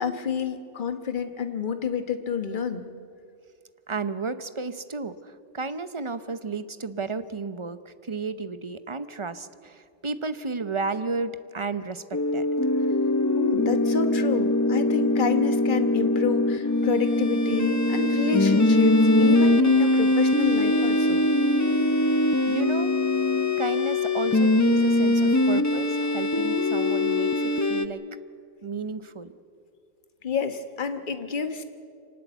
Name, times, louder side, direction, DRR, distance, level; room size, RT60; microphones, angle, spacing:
voice 1, 0.0-2.8 13.3-21.3 30.2-31.6, left 6 dB, 45° left, 8 dB, 1.4 m, -29 dB
voice 2, 3.9-12.5 22.5-22.9 23.6-28.0 28.6-29.4, right 4 dB, 30° right, 12 dB, 0.7 m, -32 dB
sound 1, 12.1-27.9, left 2 dB, 20° left, 0.6 m, -22 dB
25.5 x 19.0 x 8.1 m, 2.4 s
omnidirectional pair, 1.2 m